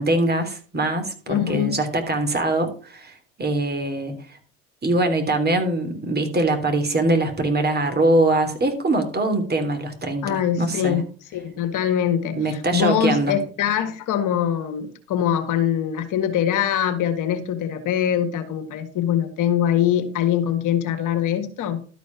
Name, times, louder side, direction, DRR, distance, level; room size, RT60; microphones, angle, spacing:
voice 1, 0.0-4.4 4.8-11.0 12.3-13.3, right 2 dB, 30° right, 5 dB, 3.2 m, -23 dB
voice 2, 1.3-1.8 10.2-11.1 11.3-21.8, left 10 dB, 60° left, 7 dB, 1.8 m, -23 dB
12.5 x 5.1 x 5.9 m, 0.42 s
hypercardioid pair, 65°, 35 cm